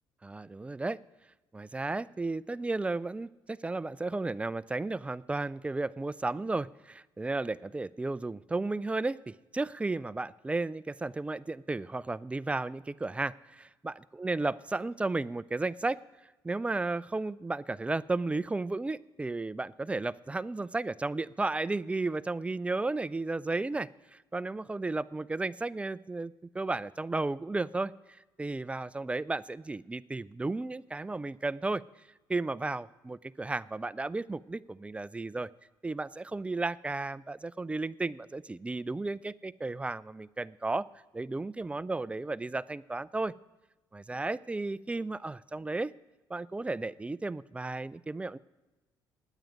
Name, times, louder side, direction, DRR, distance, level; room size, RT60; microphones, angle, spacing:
voice 1, 0.2-1.0 1.5-16.0 16.4-27.9 28.4-31.8 32.3-35.5 35.8-40.9 41.1-43.3 43.9-45.9 46.3-48.4, right 3 dB, 15° right, 18 dB, 0.4 m, -34 dB
9.1 x 8.9 x 9.4 m, 1.1 s
supercardioid pair, 80°, 9 cm